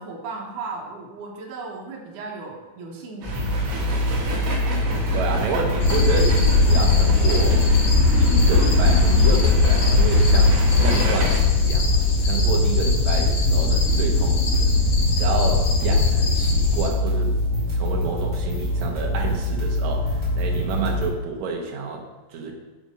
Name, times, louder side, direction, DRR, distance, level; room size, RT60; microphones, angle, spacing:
voice 1, 0.0-4.1, right 3 dB, 85° right, 1 dB, 2.7 m, -36 dB
sound 1, 3.2-21.1, left 1 dB, 15° right, 2.7 m, -25 dB
sound 2, 3.2-11.4, right 2 dB, 55° right, 2.2 m, -31 dB
voice 2, 5.1-7.6 8.2-14.7 15.2-17.4 17.7-22.5, right 4 dB, 70° right, 0 dB, 2.4 m, -29 dB
sound 3, 5.8-16.9, left 3 dB, 85° left, 3.8 m, -19 dB
12.0 x 5.2 x 5.2 m, 1.2 s
omnidirectional pair, 3.5 m